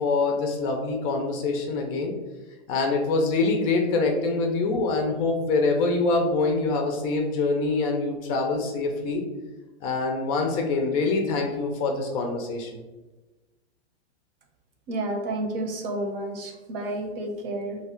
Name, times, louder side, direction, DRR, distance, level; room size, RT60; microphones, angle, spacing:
voice 1, 0.0-2.1 2.7-9.2 9.8-12.7, left 3 dB, 30° left, 2 dB, 0.5 m, -25 dB
voice 2, 14.9-17.8, right 1 dB, 55° right, 2 dB, 0.9 m, -30 dB
2.8 x 2.4 x 4.2 m, 1.2 s
hypercardioid pair, 135°, 33 cm